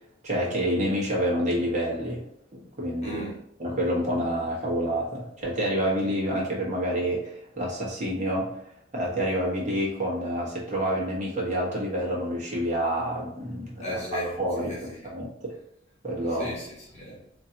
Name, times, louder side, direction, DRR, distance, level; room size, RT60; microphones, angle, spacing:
voice 1, 0.2-2.2 2.5-3.2 3.6-8.6 8.9-14.0 14.4-14.8 15.0-15.5 16.0-16.5, equal, 40° right, -3 dB, 1.2 m, -28 dB
voice 2, 3.0-3.4 13.8-15.0 16.3-17.2, equal, 35° left, -6 dB, 1.2 m, -36 dB
3.8 x 2.9 x 2.8 m, 0.73 s
head